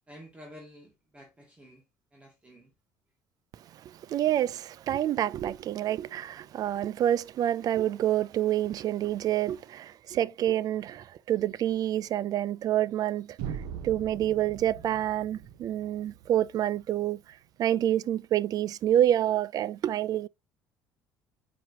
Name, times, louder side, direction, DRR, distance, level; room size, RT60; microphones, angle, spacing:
voice 1, 0.1-1.8 2.1-2.7, equal, 15° right, 2.1 m, -50 dB
voice 2, 3.7-13.4 13.8-17.2 17.6-20.3, right 11 dB, 55° right, 0.4 m, -28 dB
sound 1, 13.4-17.3, right 8 dB, 80° right, 1.1 m, -41 dB
7.8 x 5.7 x 2.9 m
supercardioid pair, 95°, 8 cm